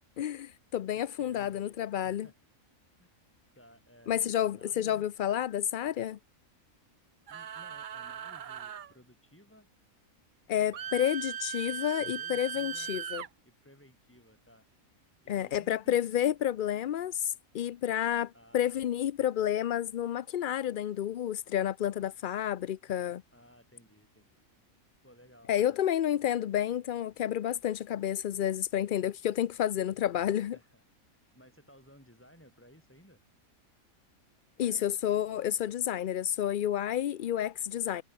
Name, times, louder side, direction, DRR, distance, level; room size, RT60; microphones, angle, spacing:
voice 1, 0.2-2.3 4.1-6.2 10.5-13.2 15.3-23.2 25.5-30.6 34.6-38.0, left 10 dB, 75° left, 0.4 m, -30 dB
voice 2, 0.9-1.8 2.0-2.4 3.0-3.1 3.6-5.1 7.3-9.7 10.7-11.0 12.1-13.0 13.4-14.7 15.2-16.0 18.3-18.8 23.3-24.4 25.0-25.8 30.5-30.9 31.3-33.2 34.6-35.1, equal, 10° left, 7.4 m, -58 dB
sound 1, 7.3-8.9 10.7-13.3, right 9 dB, 50° right, 0.6 m, -39 dB
omnidirectional pair, 1.5 m